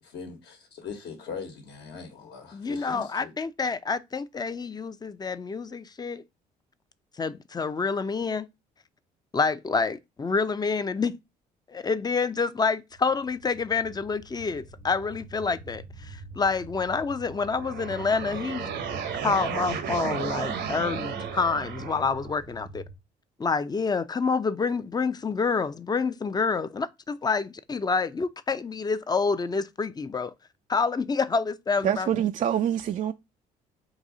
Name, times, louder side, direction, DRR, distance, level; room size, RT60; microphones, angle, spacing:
voice 1, 0.0-3.3, left 5 dB, 65° left, 1.2 m, -40 dB
voice 2, 2.5-6.2 7.2-8.5 9.3-11.2 11.7-18.7 19.2-22.8 23.4-30.3 30.7-32.1, left 4 dB, 20° left, 0.5 m, -28 dB
sound 1, 12.9-23.0, right 3 dB, 80° left, 0.9 m, -45 dB
sound 2, 17.3-22.3, right 7 dB, 65° right, 0.9 m, -33 dB
voice 3, 31.8-33.1, right 9 dB, 45° right, 0.4 m, -25 dB
4.0 x 2.7 x 4.9 m
supercardioid pair, 60°, 19 cm